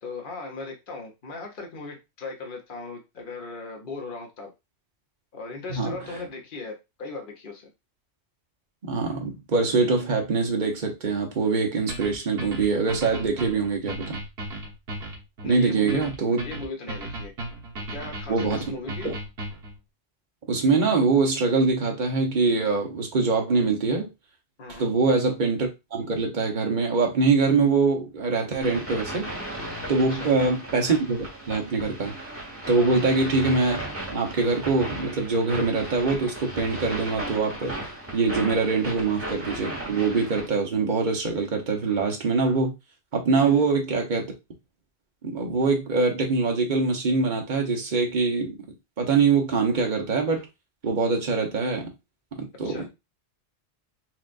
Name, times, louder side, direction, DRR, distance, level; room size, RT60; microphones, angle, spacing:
voice 1, 0.0-4.5 5.3-7.7 15.4-16.1 16.4-17.3 17.7-19.1 24.6-24.9 30.1-30.4 32.8-33.0 43.4-43.6 52.6-52.9, left 3 dB, 50° left, 2 dB, 1.1 m, -38 dB
voice 2, 8.8-14.2 15.4-16.4 18.3-18.7 19.0-19.1 20.5-24.1 24.8-29.3 29.9-32.3 32.7-33.8 34.1-42.7 43.1-44.3 45.2-48.6 49.0-50.4 50.8-51.9 52.4-52.9, right 4 dB, 45° right, 2 dB, 1.1 m, -24 dB
sound 1, 11.9-19.8, right 2 dB, 65° right, 1.4 m, -36 dB
sound 2, 28.6-40.5, right 1 dB, 10° right, 1.2 m, -36 dB
6.2 x 2.5 x 2.5 m, 0.24 s
omnidirectional pair, 1.1 m